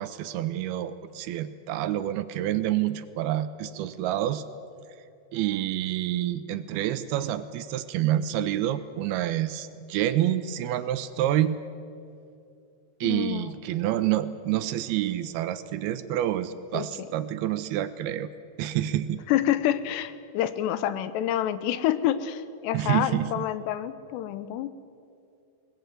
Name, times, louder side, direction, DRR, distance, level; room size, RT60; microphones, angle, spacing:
voice 1, 0.0-4.4 5.3-11.6 13.0-18.3 18.6-19.2 22.7-23.5, right 12 dB, 80° right, 12 dB, 2.5 m, -28 dB
voice 2, 13.0-13.6 16.7-16.9 19.3-24.7, left 11 dB, 90° left, 13 dB, 3.0 m, -27 dB
21.0 x 19.5 x 9.2 m, 2.5 s
omnidirectional pair, 4.8 m